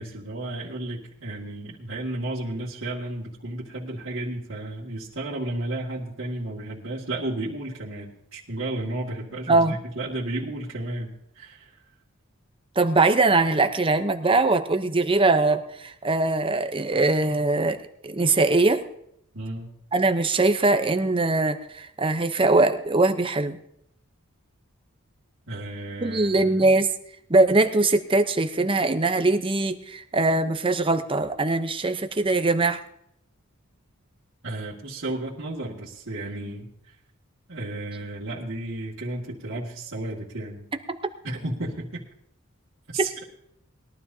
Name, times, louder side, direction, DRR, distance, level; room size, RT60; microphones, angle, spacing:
voice 1, 0.0-11.7 19.3-19.7 25.5-26.5 34.4-36.7 37.5-40.7 41.2-42.0 42.9-43.2, right 1 dB, 65° right, -8 dB, 2.1 m, -33 dB
voice 2, 9.5-9.8 12.8-17.8 18.0-18.8 19.9-23.6 26.0-26.9 27.3-32.8 40.9-41.0, right 2 dB, 25° right, 8 dB, 0.8 m, -21 dB
21.0 x 12.0 x 2.8 m, 0.73 s
head